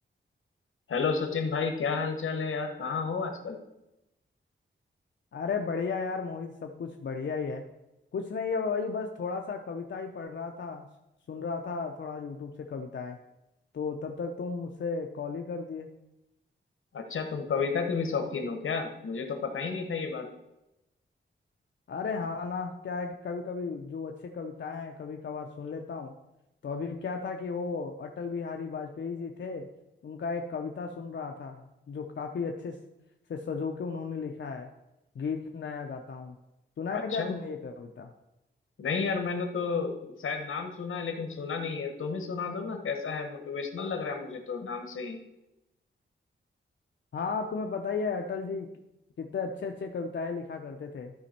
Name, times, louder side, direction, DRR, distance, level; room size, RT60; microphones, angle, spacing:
voice 1, 0.9-3.6 16.9-20.3 36.9-37.3 38.8-45.2, left 5 dB, 80° left, 5 dB, 1.1 m, -32 dB
voice 2, 5.3-7.6 8.1-10.8 11.3-13.2 13.7-15.9 21.9-26.1 26.6-29.7 30.0-32.8 33.3-34.7 35.2-36.3 36.8-38.1 47.1-48.7 49.2-51.1, left 5 dB, 60° left, 3 dB, 0.6 m, -34 dB
12.0 x 5.1 x 4.3 m, 0.93 s
wide cardioid pair, 130°, 21 cm